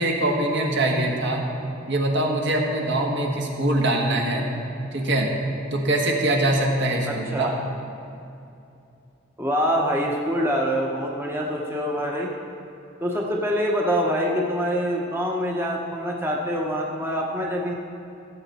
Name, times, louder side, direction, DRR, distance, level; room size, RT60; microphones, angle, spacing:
voice 1, 0.0-1.4 1.9-4.5 4.9-5.3 5.7-7.5, right 1 dB, 60° right, 0 dB, 1.5 m, -23 dB
voice 2, 7.1-7.5 9.4-12.3 13.0-17.7, equal, 10° right, -2 dB, 0.9 m, -25 dB
15.5 x 8.1 x 4.2 m, 2.6 s
head